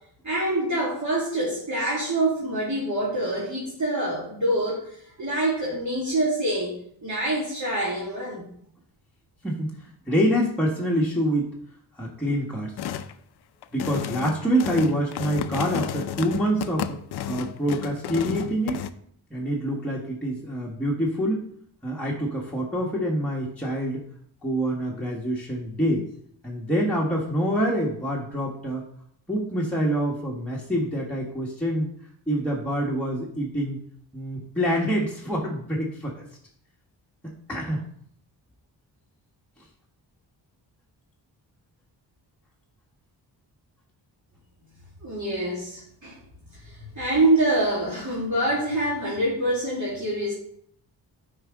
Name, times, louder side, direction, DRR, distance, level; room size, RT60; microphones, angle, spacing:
voice 1, 0.2-6.8 7.0-8.5 45.0-46.2 46.6-50.3, right 1 dB, 40° right, -6 dB, 2.2 m, -25 dB
voice 2, 9.4-11.5 12.0-12.7 13.7-17.0 17.3-18.8 19.3-21.4 21.8-24.0 24.4-26.1 26.4-28.8 29.3-31.9 32.3-33.8 34.1-36.3 37.5-37.8, equal, 5° left, -4 dB, 1.4 m, -26 dB
sound 1, 12.8-13.1 13.6-18.9, left 9 dB, 65° left, 0.5 m, -32 dB
8.7 x 4.9 x 3.6 m, 0.67 s
cardioid pair, 75°, 43 cm